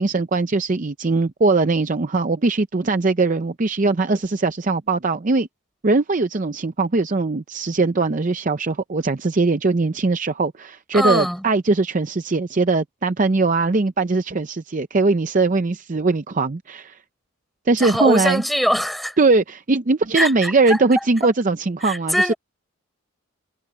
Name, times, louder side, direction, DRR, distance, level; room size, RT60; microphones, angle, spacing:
voice 1, 0.0-5.5 5.8-17.0 17.7-18.4 19.2-22.3, right 3 dB, 35° right, 0.5 m, -20 dB
voice 2, 10.9-11.4 17.8-19.2 20.1-21.1 21.8-22.4, equal, ahead, 5.0 m, -22 dB
head